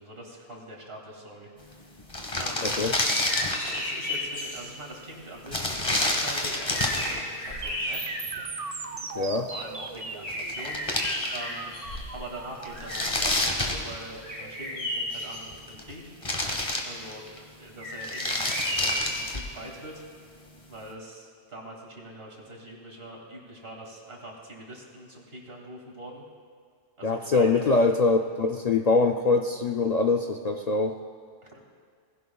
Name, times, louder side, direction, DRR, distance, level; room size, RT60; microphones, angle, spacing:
voice 1, 0.0-2.0 2.4-2.7 3.7-8.4 9.5-11.6 12.1-16.1 16.8-20.0 20.7-26.2 27.0-27.7 31.5-31.6, right 1 dB, 60° right, -1 dB, 2.6 m, -43 dB
sound 1, 1.7-1.8 2.0-3.9 5.5-7.2 9.9-10.0 10.3-11.6 12.0-12.1 12.6-14.4 15.4-15.9 16.2-17.4 17.9-19.6, left 1 dB, 30° left, 1.4 m, -29 dB
voice 2, 2.6-2.9 9.2-9.5 27.0-31.0, left 3 dB, 50° left, 3 dB, 0.5 m, -23 dB
sound 2, 3.0-4.7 6.0-6.1 6.5-8.4 8.9-9.0 10.2-12.3 12.6-13.5 14.2-15.4 17.8-19.2, left 1 dB, 80° left, 4.5 m, -33 dB
sound 3, 7.6-15.6, right 4 dB, 40° right, 0.7 m, -38 dB
20.0 x 16.0 x 2.3 m, 2.2 s
omnidirectional pair, 1.1 m